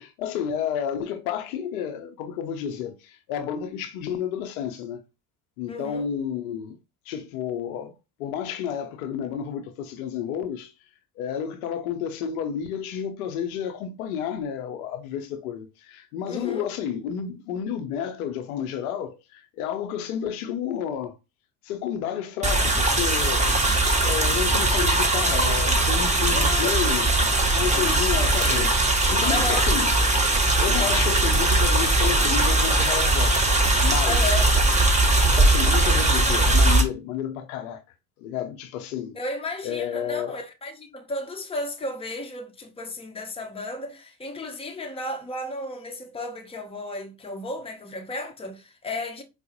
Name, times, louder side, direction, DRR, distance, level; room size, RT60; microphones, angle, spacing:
voice 1, 0.0-5.0 5.6-6.8 7.1-7.9 8.2-10.7 11.2-21.2 21.6-23.4 24.0-27.1 27.5-28.7 29.1-29.9 30.6-34.4 35.2-37.8 38.2-39.2 39.6-40.4, left 8 dB, 80° left, 0.6 m, -31 dB
voice 2, 5.7-6.1 16.3-16.6 26.3-26.8 27.7-28.0 29.3-29.7 34.1-34.5 39.1-49.2, left 2 dB, 15° left, 0.7 m, -33 dB
sound 1, 22.4-36.8, right 2 dB, 15° right, 1.0 m, -20 dB
4.6 x 2.0 x 2.9 m
hypercardioid pair, 70°, 43 cm